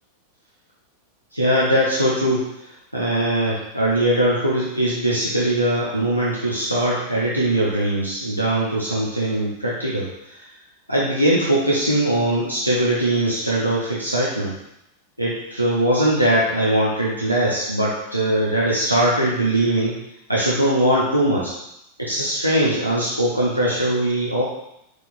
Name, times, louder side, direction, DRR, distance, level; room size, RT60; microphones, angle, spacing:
voice 1, 1.3-2.5 2.9-10.4 10.9-14.5 15.2-20.0 20.3-21.5 22.0-24.4, right 1 dB, 90° right, -7 dB, 0.8 m, -21 dB
4.7 x 4.3 x 2.6 m, 0.83 s
figure-of-eight pair, 90°, 0 cm